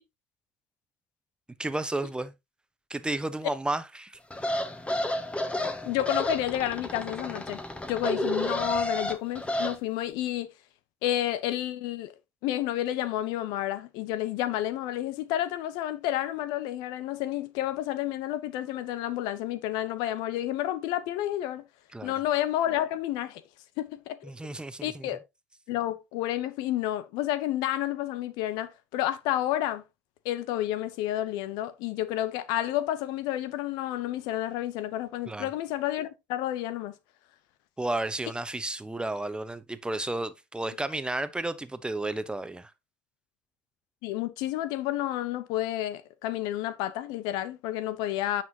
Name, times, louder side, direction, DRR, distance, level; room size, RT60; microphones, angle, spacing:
voice 1, 1.6-2.3 2.9-4.2 21.9-22.1 24.2-25.1 35.3-35.5 37.8-42.7, right 2 dB, 10° right, 1.0 m, -32 dB
sound 1, 4.3-9.7, left 1 dB, 15° left, 1.6 m, -31 dB
voice 2, 5.8-7.6 7.9-10.5 11.0-12.1 12.4-21.6 22.0-23.4 23.8-24.3 24.8-25.2 25.7-29.8 30.2-36.9 44.0-48.4, left 13 dB, 70° left, 0.7 m, -30 dB
9.4 x 5.9 x 2.9 m
hypercardioid pair, 60°, 7 cm